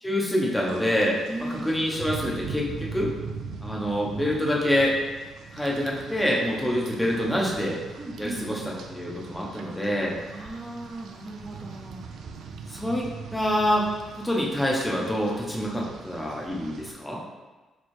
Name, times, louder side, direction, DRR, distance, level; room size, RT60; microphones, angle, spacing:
voice 1, 0.0-1.2 1.6-3.1 3.6-4.9 5.5-7.8 8.2-10.2 12.7-13.9 14.1-17.2, equal, 10° left, -3 dB, 0.7 m, -26 dB
Rain, 0.6-16.9, right 5 dB, 70° right, 0.3 m, -41 dB
voice 2, 1.3-1.7 6.7-7.0 8.0-8.4 10.3-12.0, right 1 dB, 30° right, -2 dB, 0.6 m, -37 dB
3.1 x 2.3 x 4.3 m, 1.2 s
cardioid pair, 90°, 0 cm